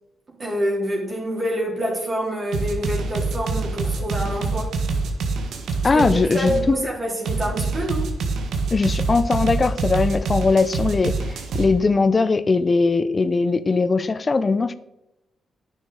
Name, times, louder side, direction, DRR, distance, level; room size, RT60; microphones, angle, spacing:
voice 1, 0.3-4.8 5.9-6.0 6.3-8.1, equal, 40° right, -4 dB, 3.2 m, -26 dB
sound 1, 2.5-6.6 7.2-11.7, right 4 dB, 75° right, 1.4 m, -25 dB
voice 2, 5.8-6.8 8.7-14.7, left 4 dB, 40° left, 15 dB, 0.6 m, -20 dB
10.0 x 6.2 x 3.9 m, 0.92 s
supercardioid pair, 55°, 0 cm